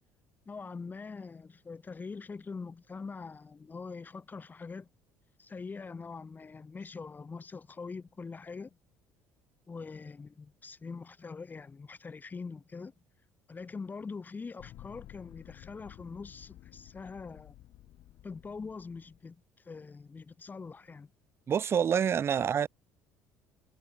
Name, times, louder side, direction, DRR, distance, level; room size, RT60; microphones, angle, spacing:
voice 1, 0.5-4.9 5.4-8.8 9.7-12.9 13.5-17.5 18.2-21.1, left 4 dB, 25° left, 0.7 m, -43 dB
sound 1, 14.6-19.2, left 14 dB, 60° left, 1.3 m, -53 dB
voice 2, 21.5-22.7, right 8 dB, 35° right, 0.4 m, -27 dB
hypercardioid pair, 65°, 8 cm